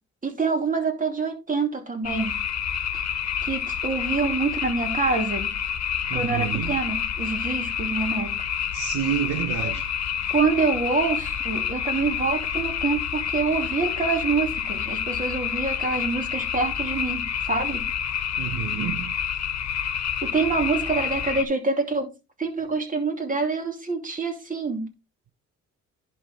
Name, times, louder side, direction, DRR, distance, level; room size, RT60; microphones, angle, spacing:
voice 1, 0.2-2.3 3.4-5.5 6.1-8.3 9.6-9.7 10.3-17.8 20.2-22.1 22.4-24.9, right 4 dB, 25° right, 2.6 m, -26 dB
sound 1, 2.0-21.4, left 9 dB, 60° left, 1.3 m, -28 dB
voice 2, 6.1-6.8 8.7-9.9 18.4-19.1, right 10 dB, 75° right, 0.9 m, -29 dB
11.0 x 4.7 x 3.5 m
cardioid pair, 90°, 30 cm